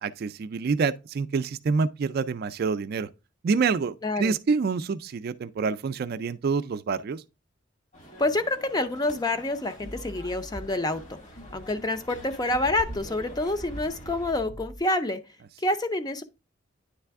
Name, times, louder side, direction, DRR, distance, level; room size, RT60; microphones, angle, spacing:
voice 1, 0.0-3.1 3.4-7.2, right 5 dB, 55° right, 0.3 m, -27 dB
voice 2, 4.0-4.3 8.2-11.2 11.5-15.2 15.6-16.2, left 2 dB, 20° left, 0.5 m, -27 dB
sound 1, 7.9-14.3, equal, 40° left, 1.4 m, -45 dB
sound 2, 9.8-14.8, equal, 75° left, 3.7 m, -45 dB
9.6 x 3.3 x 3.4 m
head